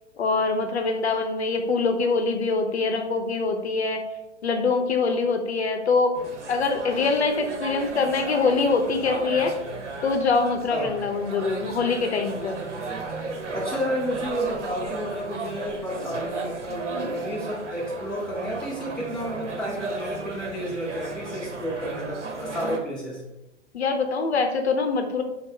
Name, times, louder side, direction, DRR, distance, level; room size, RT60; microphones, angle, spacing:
voice 1, 0.2-4.0 4.4-6.2 6.5-9.5 10.0-12.6 23.7-25.2, left 4 dB, 60° left, 5 dB, 0.7 m, -24 dB
sound 1, 6.1-22.8, right 3 dB, 70° right, 0.8 m, -34 dB
voice 2, 13.5-23.2, equal, 5° left, -7 dB, 0.4 m, -31 dB
5.3 x 2.1 x 4.2 m, 0.98 s
figure-of-eight pair, 115°, 36 cm